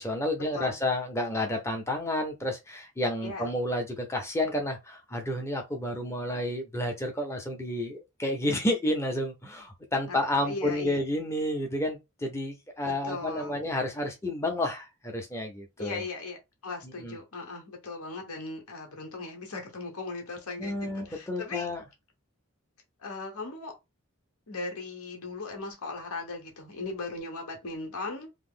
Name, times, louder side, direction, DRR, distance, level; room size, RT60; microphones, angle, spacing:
voice 1, 0.0-16.0 16.8-17.2 20.6-21.8, left 1 dB, 10° left, 0.6 m, -30 dB
voice 2, 10.4-11.0 12.8-13.6 15.8-21.7 23.0-23.7 24.5-28.3, left 3 dB, 85° left, 1.0 m, -38 dB
2.9 x 2.0 x 3.6 m
head